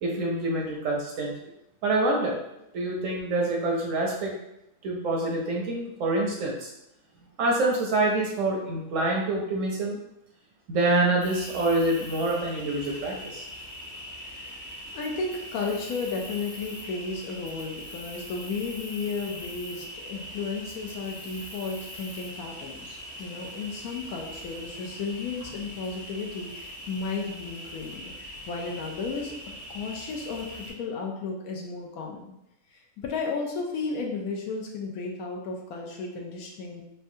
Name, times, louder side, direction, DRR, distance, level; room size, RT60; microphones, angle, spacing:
voice 1, 0.0-1.5 1.8-2.4 2.7-4.3 4.8-6.7 7.4-10.0 10.7-13.4, right 2 dB, 65° right, -1 dB, 0.9 m, -26 dB
Cricket, 11.2-30.7, equal, 50° left, 1.2 m, -42 dB
voice 2, 14.2-29.3 29.7-32.3 32.7-36.8, left 4 dB, 70° left, 0 dB, 1.0 m, -34 dB
4.4 x 2.2 x 2.6 m, 0.83 s
omnidirectional pair, 1.7 m